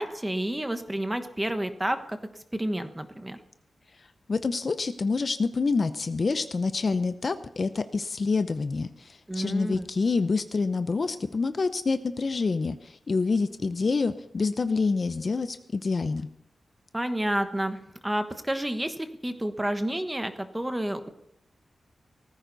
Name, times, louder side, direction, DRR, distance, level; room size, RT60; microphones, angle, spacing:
voice 1, 0.0-2.2 2.5-3.4 9.3-9.9 16.9-21.1, right 1 dB, 10° right, 8 dB, 1.2 m, -30 dB
voice 2, 4.3-16.3, left 4 dB, 40° left, 10 dB, 0.7 m, -27 dB
18.0 x 15.0 x 4.1 m, 0.74 s
wide cardioid pair, 160°, 0 cm